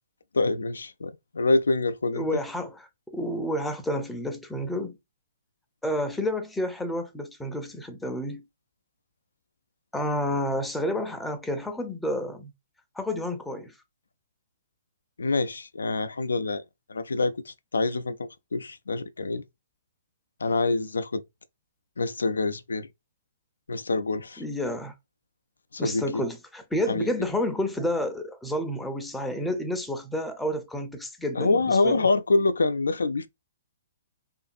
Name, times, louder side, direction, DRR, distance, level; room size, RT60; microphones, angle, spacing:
voice 1, 0.3-2.4 15.2-16.6 16.9-18.1 18.5-19.4 20.4-21.2 22.0-22.9 23.7-24.4 25.7-26.2 26.9-27.1 31.4-33.3, left 3 dB, 90° left, 0.3 m, -26 dB
voice 2, 2.1-5.0 5.8-8.4 9.9-12.5 13.0-13.7 24.4-24.9 25.8-32.1, left 1 dB, 5° left, 0.5 m, -30 dB
2.5 x 2.5 x 2.3 m
hypercardioid pair, 135°, 0 cm